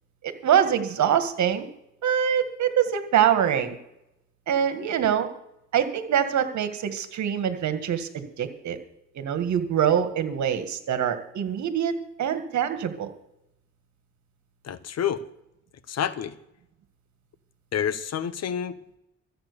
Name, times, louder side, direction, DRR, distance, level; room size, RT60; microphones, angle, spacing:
voice 1, 0.4-1.6 2.0-3.8 4.5-5.3 5.7-8.8 9.2-13.1, right 9 dB, 70° right, 8 dB, 2.0 m, -24 dB
voice 2, 14.6-15.2 15.9-16.3 17.7-19.0, left 8 dB, 55° left, 14 dB, 1.1 m, -29 dB
14.0 x 9.0 x 6.9 m, 0.82 s
cardioid pair, 90°, 30 cm